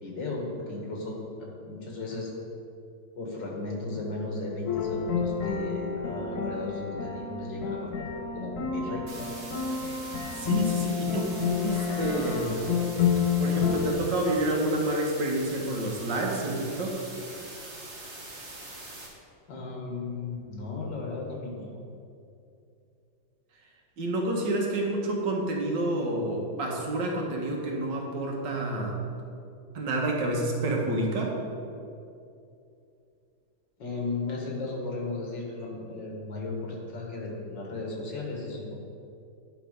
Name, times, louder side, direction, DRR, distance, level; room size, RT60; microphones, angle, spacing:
voice 1, 0.0-2.3 3.2-9.0 19.5-21.7 33.8-38.8, left 3 dB, 80° left, -1 dB, 2.3 m, -35 dB
sound 1, 4.7-13.9, left 6 dB, 65° left, 1.1 m, -29 dB
sound 2, 9.1-19.1, right 2 dB, 40° right, 1.8 m, -43 dB
voice 2, 10.1-12.6 13.4-17.0 24.0-29.0 29.7-31.3, right 1 dB, 85° right, -1 dB, 1.9 m, -29 dB
10.5 x 5.1 x 5.1 m, 2.6 s
omnidirectional pair, 1.9 m